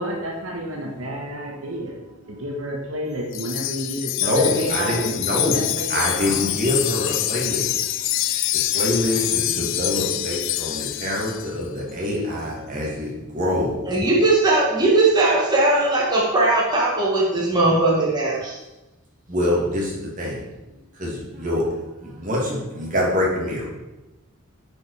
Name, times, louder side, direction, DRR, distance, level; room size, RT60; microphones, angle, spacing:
voice 1, 0.0-1.9 2.3-6.6 9.1-9.7, equal, 70° right, 0 dB, 1.4 m, -31 dB
voice 2, 0.8-2.4 4.2-5.6 5.9-13.8 19.3-23.7, left 1 dB, 40° right, -3 dB, 2.6 m, -26 dB
Wind chime, 3.3-11.5, left 14 dB, 60° left, 0.4 m, -25 dB
voice 3, 13.9-18.6, right 2 dB, 20° right, -5 dB, 1.8 m, -19 dB
9.6 x 5.2 x 4.9 m, 1.0 s
head